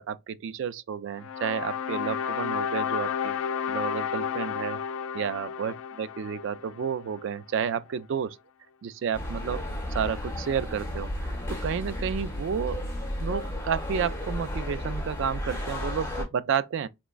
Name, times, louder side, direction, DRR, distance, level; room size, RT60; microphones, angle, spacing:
voice 1, 0.0-3.4 3.7-4.8 5.1-8.4 8.8-9.6 9.9-12.8 13.2-16.9, right 7 dB, 60° right, 0.3 m, -31 dB
sound 1, 1.2-7.4, left 7 dB, 70° left, 0.3 m, -32 dB
sound 2, 9.1-16.2, left 1 dB, 15° left, 1.4 m, -33 dB
3.5 x 3.0 x 2.4 m
head